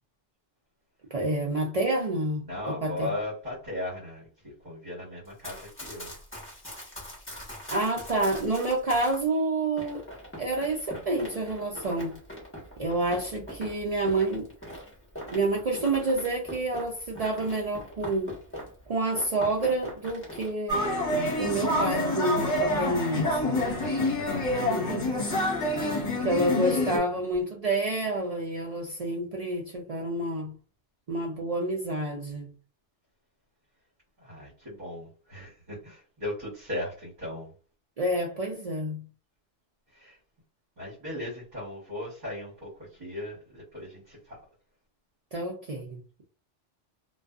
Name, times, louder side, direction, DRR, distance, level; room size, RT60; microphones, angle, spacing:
voice 1, 1.1-3.1 7.7-10.0 10.4-12.2 12.8-14.5 15.3-18.3 18.9-20.8 21.4-23.7 24.5-25.1 26.2-30.5 31.1-32.5 38.0-39.1 45.3-46.0, right 2 dB, 65° right, 0.3 m, -28 dB
voice 2, 2.4-6.1 23.6-24.6 25.0-25.2 26.3-26.4 26.7-27.0 34.2-37.5 39.9-40.2 40.8-44.4, left 1 dB, 40° right, 1.2 m, -38 dB
Run, 5.2-9.2 9.8-18.9 19.1-20.5, equal, 10° left, 1.0 m, -42 dB
sound 1, 20.7-27.0, left 1 dB, 45° left, 1.0 m, -27 dB
2.4 x 2.3 x 2.3 m
omnidirectional pair, 1.2 m